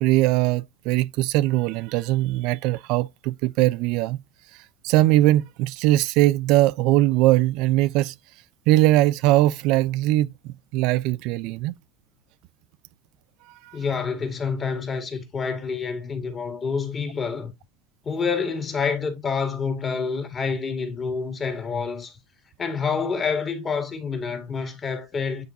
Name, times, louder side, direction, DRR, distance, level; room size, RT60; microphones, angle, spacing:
voice 1, 0.0-4.2 4.5-8.1 8.7-10.3 10.7-11.7 13.6-13.8, right 16 dB, 65° right, 0.3 m, -21 dB
voice 2, 13.7-17.5 18.1-22.2 22.6-25.4, left 5 dB, 30° left, 1.9 m, -27 dB
9.2 x 3.9 x 2.7 m
supercardioid pair, 105°, 0 cm